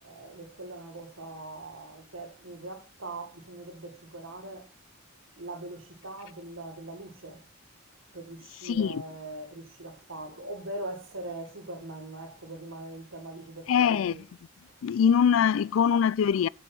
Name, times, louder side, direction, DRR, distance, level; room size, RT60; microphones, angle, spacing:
voice 1, 0.0-4.7 5.4-7.5 8.1-14.2 15.3-15.7, right 2 dB, 80° right, 1.8 m, -41 dB
voice 2, 8.6-9.0 13.7-14.1 14.8-16.5, left 7 dB, 80° left, 0.3 m, -23 dB
7.5 x 5.2 x 6.0 m
head